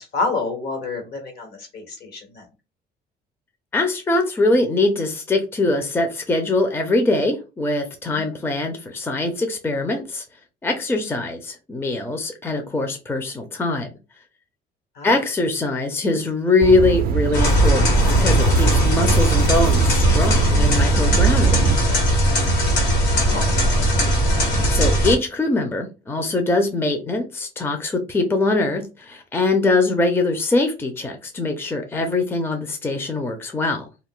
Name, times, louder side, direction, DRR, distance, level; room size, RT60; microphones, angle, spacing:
voice 1, 0.0-2.4 8.1-8.3 14.9-15.2 23.1-24.2, left 3 dB, 65° left, 4 dB, 1.3 m, -29 dB
voice 2, 3.7-10.2 10.6-13.9 15.0-21.7 24.7-33.9, left 2 dB, 15° left, 4 dB, 0.5 m, -22 dB
sound 1, 16.6-21.8, right 6 dB, 60° right, 0.4 m, -22 dB
sound 2, 17.3-25.1, equal, 85° left, 1.3 m, -18 dB
2.4 x 2.1 x 3.7 m, 0.29 s
cardioid pair, 110°, 17 cm